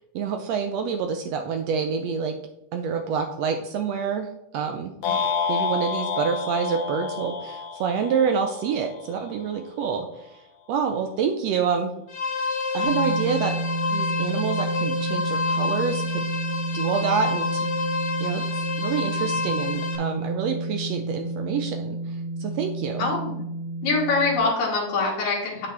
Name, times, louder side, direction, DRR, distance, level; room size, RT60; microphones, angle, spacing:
voice 1, 0.1-2.4 2.7-4.3 4.5-4.9 5.5-10.3 10.7-11.9 12.7-13.6 13.9-16.2 16.7-17.7 18.2-18.4 18.8-23.1, right 6 dB, 75° right, 5 dB, 1.5 m, -27 dB
sound 1, 5.0-9.3, left 5 dB, 85° left, 1.1 m, -29 dB
sound 2, 12.1-20.0, left 4 dB, 55° left, 1.3 m, -28 dB
sound 3, 12.8-24.4, right 2 dB, 40° left, 2.6 m, -30 dB
voice 2, 23.0-23.4 23.8-25.7, left 3 dB, 70° left, -6 dB, 3.0 m, -24 dB
8.5 x 6.4 x 3.3 m, 0.84 s
omnidirectional pair, 3.6 m